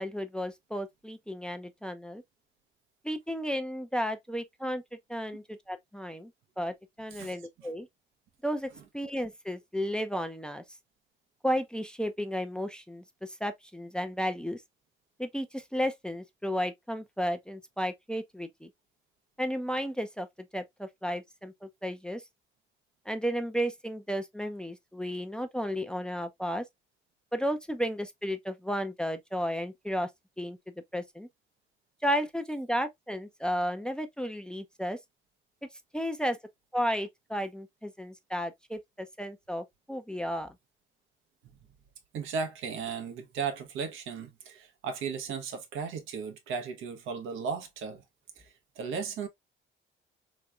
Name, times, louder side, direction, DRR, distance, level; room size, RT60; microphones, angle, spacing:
voice 1, 0.0-2.2 3.0-4.8 5.1-6.3 6.6-7.9 8.4-8.7 8.9-10.6 11.4-14.6 15.2-18.7 19.4-20.3 20.5-22.2 23.1-26.6 27.3-30.1 30.4-30.6 30.9-31.3 32.0-35.0 35.9-36.4 36.7-40.5, equal, 5° left, 0.5 m, -33 dB
voice 2, 42.1-48.0 48.4-49.3, right 5 dB, 85° right, 0.9 m, -36 dB
3.3 x 3.0 x 2.3 m
cardioid pair, 90°, 20 cm